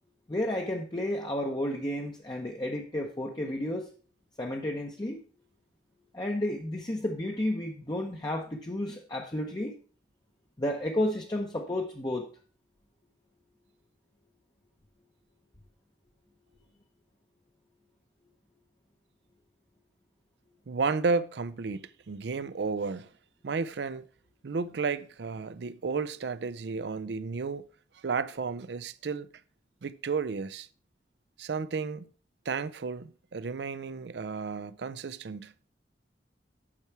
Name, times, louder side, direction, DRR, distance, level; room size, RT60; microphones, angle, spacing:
voice 1, 0.3-3.9 4.4-5.2 6.1-9.8 10.6-12.3, left 1 dB, 25° left, 0.7 m, -32 dB
voice 2, 20.7-23.1 23.4-24.0 24.4-27.7 28.0-29.3 29.8-30.7 31.4-32.1 32.5-35.5, right 4 dB, 70° right, 0.5 m, -32 dB
8.6 x 6.0 x 4.5 m
head